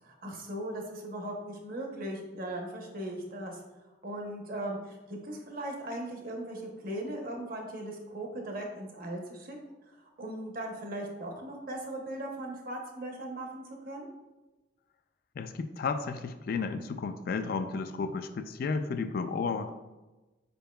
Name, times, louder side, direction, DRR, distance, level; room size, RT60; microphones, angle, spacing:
voice 1, 0.0-3.6 4.0-14.1, right 1 dB, 50° right, 1 dB, 0.8 m, -38 dB
voice 2, 15.4-19.7, left 4 dB, 55° left, 9 dB, 0.3 m, -33 dB
5.3 x 4.5 x 2.3 m, 1.1 s
head